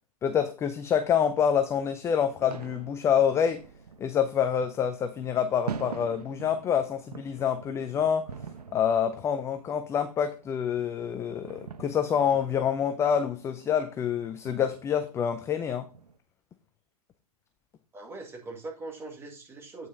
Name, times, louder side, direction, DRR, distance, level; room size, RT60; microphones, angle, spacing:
voice 1, 0.2-3.6 4.0-8.3 8.7-15.9, left 8 dB, 15° left, 0.5 m, -27 dB
sound 1, 1.1-16.2, right 6 dB, 75° right, 0.9 m, -45 dB
voice 2, 17.9-19.9, right 3 dB, 10° right, 1.9 m, -41 dB
8.9 x 5.4 x 3.9 m
hypercardioid pair, 120°, 20 cm